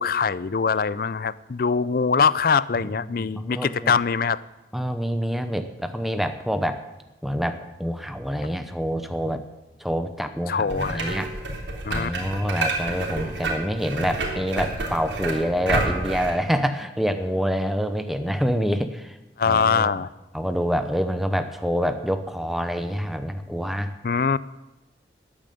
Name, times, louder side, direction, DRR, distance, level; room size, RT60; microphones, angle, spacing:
voice 1, 0.0-4.4 10.5-11.2 11.9-12.1 19.4-20.1 24.0-24.4, left 5 dB, 50° left, 18 dB, 0.5 m, -23 dB
voice 2, 3.2-3.9 4.7-6.8 7.2-9.4 9.8-11.3 11.9-19.2 19.4-19.9 20.3-23.9, equal, ahead, 8 dB, 0.8 m, -26 dB
sound 1, 10.7-16.3, right 2 dB, 75° right, 3.2 m, -29 dB
14.0 x 8.9 x 9.3 m, 1.0 s
head